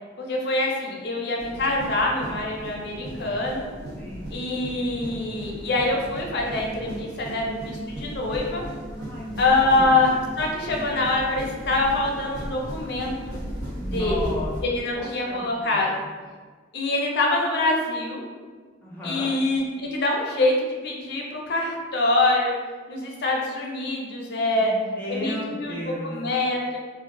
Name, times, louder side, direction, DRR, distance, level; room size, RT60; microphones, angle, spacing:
voice 1, 0.2-3.6 4.3-8.6 9.4-10.1 10.4-13.4 13.8-15.9 16.7-18.2 19.0-22.6 22.9-24.7 25.1-25.8 26.0-26.8, left 2 dB, 55° left, -1 dB, 0.5 m, -25 dB
sound 1, 1.4-14.6, right 1 dB, 60° right, 0.7 m, -36 dB
voice 2, 4.0-4.4 8.9-9.9 13.7-14.5 14.9-16.0 18.8-19.4 24.5-26.2, left 1 dB, 10° left, -7 dB, 0.6 m, -35 dB
2.4 x 2.2 x 3.6 m, 1.5 s
head